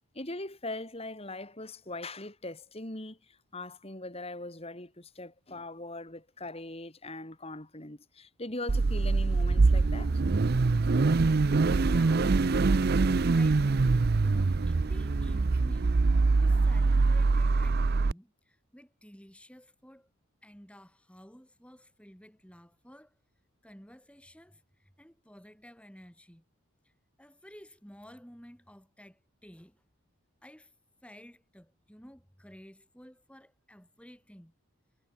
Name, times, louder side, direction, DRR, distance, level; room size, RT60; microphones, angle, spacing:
voice 1, 0.1-10.2, left 2 dB, 25° left, 2.8 m, -41 dB
Car / Idling / Accelerating revving vroom, 8.7-18.1, right 3 dB, 45° right, 0.5 m, -24 dB
voice 2, 11.9-13.0 13.3-13.9 14.2-16.0 16.3-20.1 20.4-23.2 23.6-26.4 26.8-26.9 27.2-29.8 30.4-30.7 31.0-34.5, equal, 5° left, 6.8 m, -53 dB
head